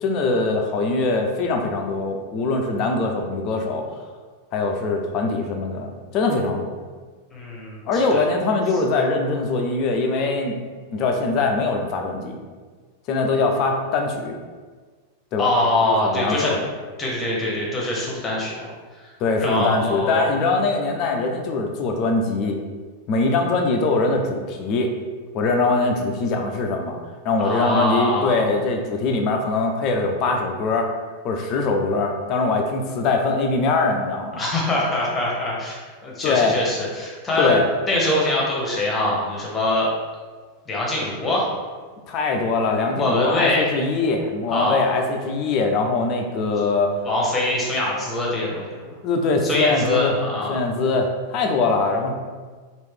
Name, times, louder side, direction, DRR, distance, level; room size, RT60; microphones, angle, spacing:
voice 1, 0.0-3.9 4.5-6.8 7.9-10.6 10.9-12.4 13.1-14.4 15.3-15.5 15.8-16.7 19.2-22.6 23.1-24.9 25.3-27.0 27.2-30.9 31.2-34.4 36.2-36.6 37.4-37.7 42.1-46.9 49.0-50.2 50.5-52.1, left 3 dB, 40° left, 3 dB, 0.4 m, -22 dB
voice 2, 7.3-8.2 15.4-16.5 17.0-18.7 19.4-20.3 27.4-28.5 34.4-37.6 37.8-39.9 40.7-41.5 42.9-43.7 44.5-44.9 47.0-48.9 49.4-50.6, left 1 dB, 20° left, -4 dB, 1.0 m, -23 dB
3.1 x 2.5 x 3.4 m, 1.5 s
figure-of-eight pair, 90°, 0 cm